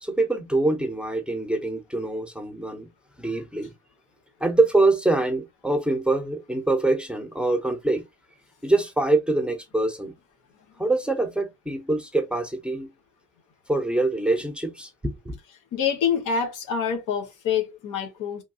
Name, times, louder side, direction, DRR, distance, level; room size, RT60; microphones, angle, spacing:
voice 1, 0.0-2.9 3.2-3.7 4.4-8.0 8.6-10.1 10.8-12.9 13.7-15.4, right 2 dB, 5° right, 0.8 m, -24 dB
voice 2, 15.7-18.4, left 7 dB, 80° left, 1.2 m, -26 dB
3.5 x 2.6 x 2.5 m
cardioid pair, 90°, 30 cm